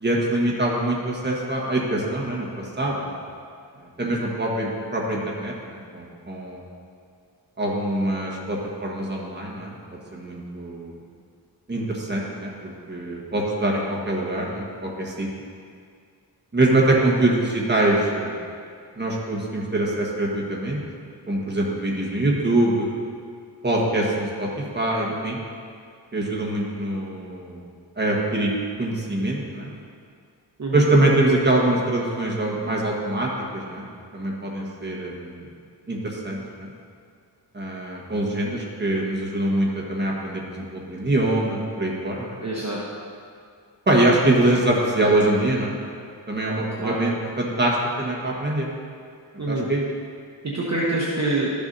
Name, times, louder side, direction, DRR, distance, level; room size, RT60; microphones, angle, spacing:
voice 1, 0.0-3.2 3.8-6.6 7.6-9.7 10.1-10.9 11.7-15.3 16.5-18.4 19.0-20.8 21.3-22.9 23.6-25.4 26.1-27.6 28.0-28.5 28.8-29.7 30.7-33.9 34.1-35.4 35.9-36.7 37.5-42.4 43.9-45.7 46.3-48.7 49.5-49.8, right 1 dB, 25° right, -3 dB, 1.4 m, -24 dB
voice 2, 42.4-42.8 46.4-47.0 49.4-49.7 50.4-51.5, right 2 dB, 40° right, -5 dB, 1.0 m, -26 dB
12.5 x 7.0 x 2.7 m, 2.2 s
wide cardioid pair, 115°, 42 cm